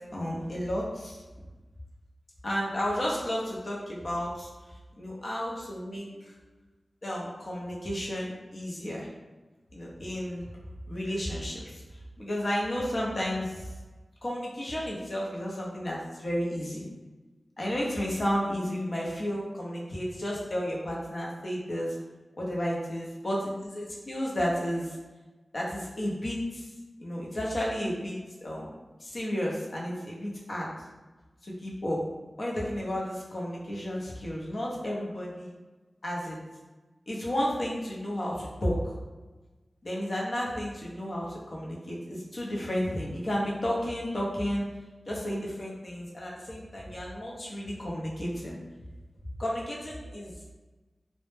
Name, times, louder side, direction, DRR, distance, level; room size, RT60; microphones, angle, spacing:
voice 1, 0.1-1.2 2.4-4.5 5.0-6.3 7.0-9.1 9.7-10.5 10.9-11.8 12.2-13.7 14.2-16.8 17.6-22.0 22.4-25.0 25.5-26.7 27.0-28.7 29.0-30.7 31.4-32.0 32.4-35.5 36.0-36.4 37.1-38.9 39.8-44.7 45.1-48.6 49.4-50.5, equal, 50° left, -4 dB, 0.6 m, -32 dB
2.0 x 2.0 x 3.1 m, 1.2 s
wide cardioid pair, 80°, 0 cm